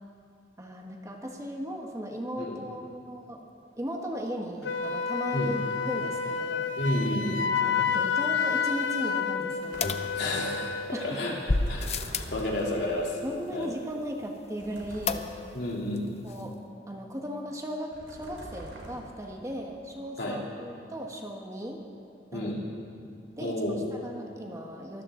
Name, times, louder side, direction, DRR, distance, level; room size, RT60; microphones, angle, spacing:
voice 1, 0.6-3.5 3.8-5.6 5.9-6.7 7.6-9.9 10.9-11.2 12.1-12.2 13.2-15.3 16.2-16.6 16.9-21.8 22.3-22.5 23.4-23.5 24.0-25.0, equal, 15° right, 1 dB, 1.3 m, -37 dB
Wind instrument woodwind instrument, 4.6-11.0, left 6 dB, 85° left, 0.7 m, -29 dB
voice 2, 6.8-7.4 10.1-11.4 11.7-13.2 13.5-13.7 15.5-16.1 20.2-20.4 22.3-22.6 23.4-23.8, left 1 dB, 65° left, -2 dB, 3.0 m, -31 dB
sound 1, 9.6-10.3 11.5-12.9 14.6-15.6 17.9-19.3, right 1 dB, 85° right, 3.1 m, -45 dB
sound 2, 9.8-10.8 11.5-12.4 15.1-15.7 16.0-16.1 16.3-16.4, left 3 dB, 35° left, 0.6 m, -30 dB
23.5 x 14.5 x 3.8 m, 2.6 s
head